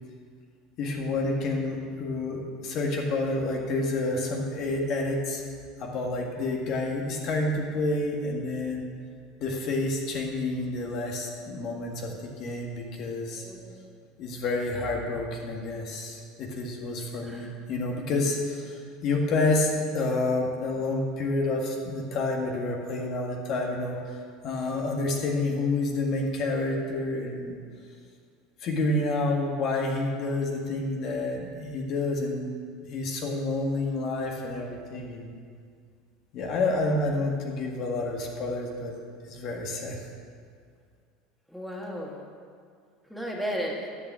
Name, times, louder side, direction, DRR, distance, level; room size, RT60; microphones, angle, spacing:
voice 1, 0.8-5.4 5.8-8.9 9.4-13.5 14.2-24.2 24.4-27.6 28.6-32.5 32.9-35.4 36.3-39.0 39.3-40.0, left 2 dB, 55° left, 0 dB, 1.8 m, -29 dB
voice 2, 13.4-13.8 17.2-17.5 41.5-42.2 43.1-43.9, equal, ahead, -2 dB, 2.0 m, -34 dB
10.5 x 6.2 x 7.6 m, 2.1 s
hypercardioid pair, 95°, 0 cm